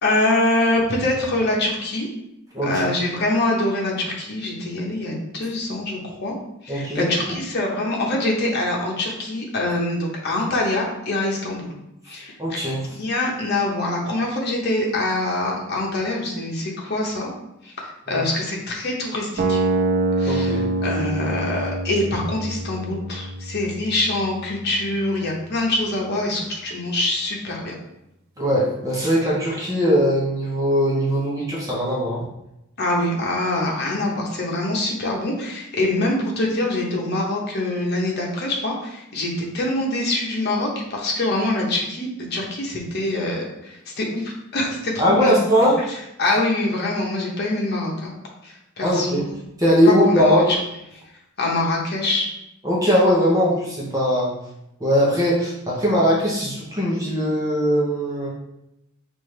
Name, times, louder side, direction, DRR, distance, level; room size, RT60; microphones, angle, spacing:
voice 1, 0.0-2.1 2.6-6.3 6.6-11.7 12.0-12.3 12.9-17.3 17.6-19.6 20.2-27.7 32.8-45.3 46.2-48.1 48.4-49.3 49.8-50.6 51.4-52.3, left 2 dB, 55° left, -2 dB, 1.0 m, -24 dB
voice 2, 2.5-2.9 6.7-7.1 12.4-12.9 18.1-18.3 20.3-20.7 28.4-32.2 45.0-45.8 48.8-49.2 49.6-50.5 52.6-54.3 54.8-58.3, equal, 15° right, -5 dB, 0.9 m, -20 dB
sound 1, 19.4-25.4, right 2 dB, 50° right, 0.4 m, -26 dB
5.4 x 2.7 x 3.3 m, 0.86 s
head